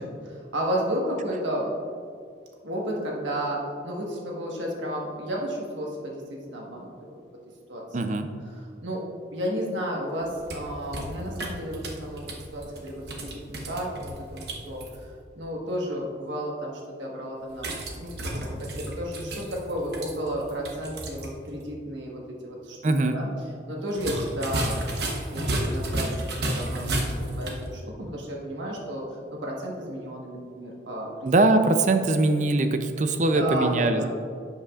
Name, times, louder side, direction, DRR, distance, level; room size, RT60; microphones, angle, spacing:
voice 1, 0.0-1.7 2.6-7.1 7.7-7.8 8.8-22.8 23.1-23.3 23.7-26.1 26.4-31.4 33.3-34.1, equal, 85° right, -2 dB, 1.4 m, -32 dB
voice 2, 7.9-8.3 22.8-23.2 31.2-34.1, right 2 dB, 40° right, 8 dB, 0.5 m, -22 dB
sound 1, 10.2-15.0 17.5-21.3 21.6-21.7 23.9-27.7, right 1 dB, 60° right, 1.0 m, -32 dB
11.0 x 8.2 x 2.4 m, 2.3 s
head